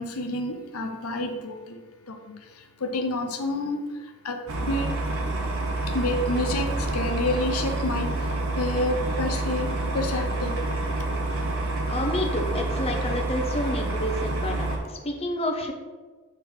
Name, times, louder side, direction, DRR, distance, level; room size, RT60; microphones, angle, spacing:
voice 1, 0.0-1.8 2.3-2.4 2.8-3.9 4.2-4.9 5.9-8.2 8.6-10.6, left 1 dB, 70° left, 4 dB, 0.8 m, -29 dB
sound 1, 4.5-14.8, right 2 dB, 65° right, 1.2 m, -28 dB
voice 2, 11.9-15.7, left 1 dB, 25° left, 2 dB, 0.7 m, -29 dB
7.7 x 3.9 x 4.4 m, 1.4 s
head